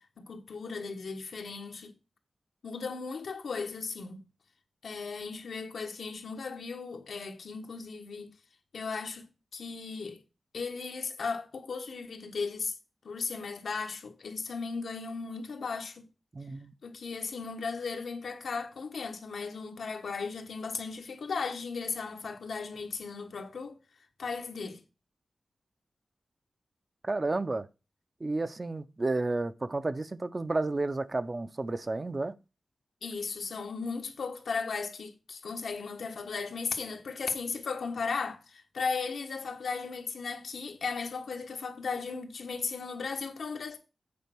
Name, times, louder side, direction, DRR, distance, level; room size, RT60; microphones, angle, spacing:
voice 1, 0.2-1.9 2.6-4.2 4.8-8.3 8.7-10.2 10.5-12.7 13.0-16.0 16.8-23.8 24.2-24.8 33.0-43.8, left 4 dB, 90° left, 1.3 m, -36 dB
voice 2, 16.3-16.7 27.0-27.7 28.2-32.3, right 2 dB, 30° right, 0.5 m, -31 dB
8.5 x 4.4 x 5.9 m
wide cardioid pair, 140°, 0 cm